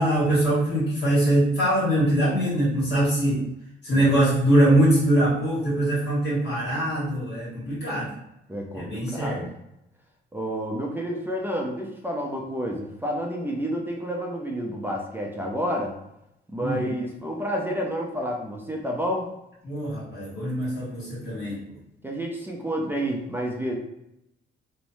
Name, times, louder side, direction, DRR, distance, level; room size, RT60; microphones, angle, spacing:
voice 1, 0.0-3.4 3.8-8.1 8.7-9.4 16.6-16.9 19.6-21.6, right 1 dB, 60° left, -8 dB, 1.4 m, -22 dB
voice 2, 3.9-4.2 8.5-9.5 10.3-15.9 16.5-19.3 22.0-23.8, equal, 10° right, 0 dB, 0.5 m, -29 dB
3.0 x 2.0 x 2.7 m, 0.84 s
cardioid pair, 90°, 20 cm